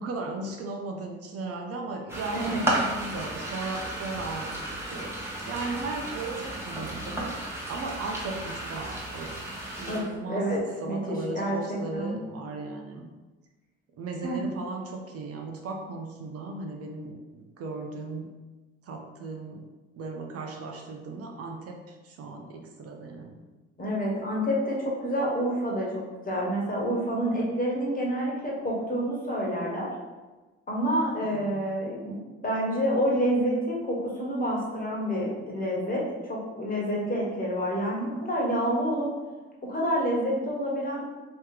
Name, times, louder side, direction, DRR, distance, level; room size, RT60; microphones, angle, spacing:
voice 1, 0.0-10.5 10.8-13.1 14.0-18.4 18.8-19.6 20.0-23.4 31.2-31.7, right 3 dB, 55° right, 2 dB, 0.6 m, -37 dB
sound 1, 2.1-10.0, right 1 dB, 10° right, 1.2 m, -33 dB
voice 2, 9.9-12.1 14.2-14.4 23.8-29.9 30.7-36.0 36.3-39.1 39.6-41.1, equal, 30° left, -3 dB, 1.4 m, -28 dB
3.0 x 2.8 x 3.7 m, 1.2 s
supercardioid pair, 65°, 29 cm